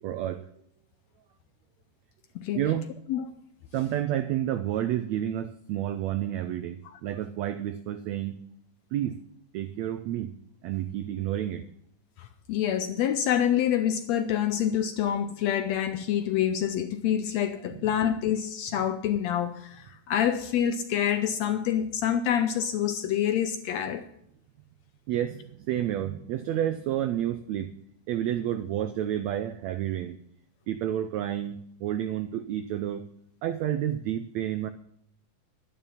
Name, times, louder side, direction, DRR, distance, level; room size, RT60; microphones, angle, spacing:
voice 1, 0.0-0.5 2.5-2.9 3.7-8.3 8.9-9.2 9.5-10.3 10.6-11.7 17.7-17.8 25.1-27.7 28.1-30.2 30.7-33.1 33.4-34.7, right 11 dB, 80° right, 1.6 m, -30 dB
voice 2, 12.2-24.1, left 10 dB, 80° left, 1.5 m, -27 dB
11.5 x 11.0 x 5.7 m
omnidirectional pair, 3.8 m